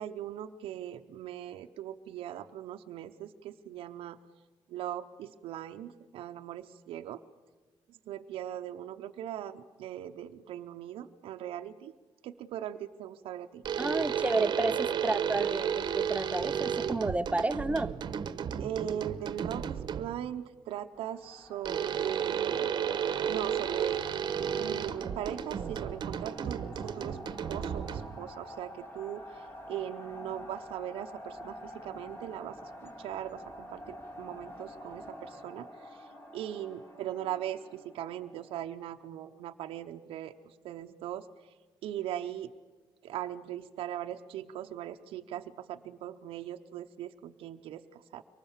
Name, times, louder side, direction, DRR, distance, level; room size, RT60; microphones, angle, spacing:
voice 1, 0.0-4.2 4.7-7.2 7.9-11.9 12.2-13.6 18.6-22.7 23.3-24.0 24.6-27.2 27.5-32.7 33.0-41.6 41.8-42.5 43.0-48.2, right 11 dB, 85° right, 5 dB, 0.7 m, -40 dB
sound 1, 13.6-20.3 21.6-28.3, right 8 dB, 50° right, 1.0 m, -33 dB
voice 2, 13.8-17.9, right 2 dB, 15° right, 13 dB, 0.6 m, -31 dB
sound 2, 21.0-38.7, equal, 25° left, 3.1 m, -48 dB
23.5 x 19.5 x 7.2 m, 1.4 s
cardioid pair, 100°, 9 cm